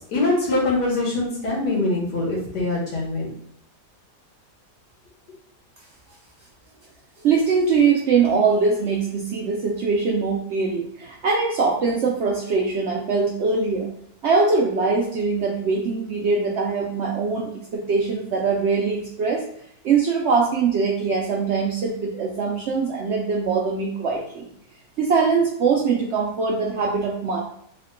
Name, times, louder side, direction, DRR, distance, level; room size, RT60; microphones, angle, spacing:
voice 1, 0.1-3.3, left 2 dB, 80° left, -3 dB, 1.7 m, -23 dB
voice 2, 7.2-13.9 14.2-19.4 19.8-24.5 25.0-27.4, right 4 dB, 80° right, -2 dB, 0.6 m, -22 dB
3.5 x 2.2 x 3.6 m, 0.69 s
omnidirectional pair, 1.8 m